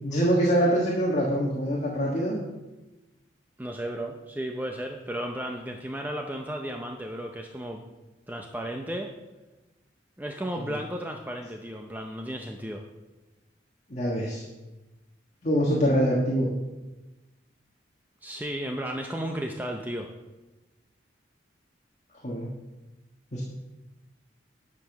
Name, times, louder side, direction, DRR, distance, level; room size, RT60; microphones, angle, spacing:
voice 1, 0.0-2.4 10.6-10.7 13.9-14.4 15.4-16.5 22.2-22.5 23.3-23.4, equal, 35° left, -3 dB, 1.6 m, -24 dB
voice 2, 3.6-7.9 8.3-9.1 10.2-12.8 18.2-20.1, right 1 dB, 10° right, 3 dB, 0.6 m, -34 dB
10.0 x 6.0 x 6.1 m, 1.1 s
head